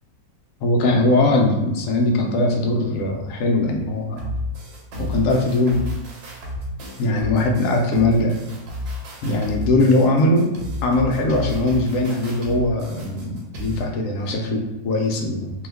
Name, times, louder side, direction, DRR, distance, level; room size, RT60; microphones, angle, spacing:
voice 1, 0.6-4.3 5.0-5.9 7.0-8.4 9.2-10.5 10.8-15.7, left 2 dB, 75° left, 1 dB, 0.7 m, -20 dB
sound 1, 4.2-13.8, left 2 dB, 65° right, 1.2 m, -32 dB
2.9 x 2.2 x 3.4 m, 1.1 s
omnidirectional pair, 1.9 m